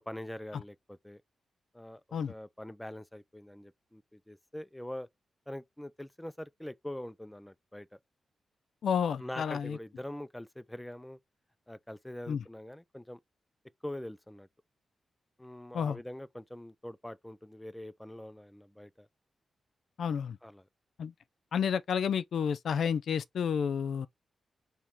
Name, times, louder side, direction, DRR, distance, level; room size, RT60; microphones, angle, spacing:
voice 1, 0.1-1.2 1.7-2.0 2.3-5.1 5.5-8.0 9.2-11.2 11.7-13.2 13.8-14.5 15.4-19.1 20.4-20.7, left 1 dB, 5° left, 0.3 m, -44 dB
voice 2, 8.8-9.8 12.3-12.4 15.7-16.0 20.0-20.4 21.0-21.1 21.5-24.1, left 7 dB, 80° left, 0.3 m, -30 dB
4.3 x 3.0 x 3.5 m
wide cardioid pair, 110°, 0 cm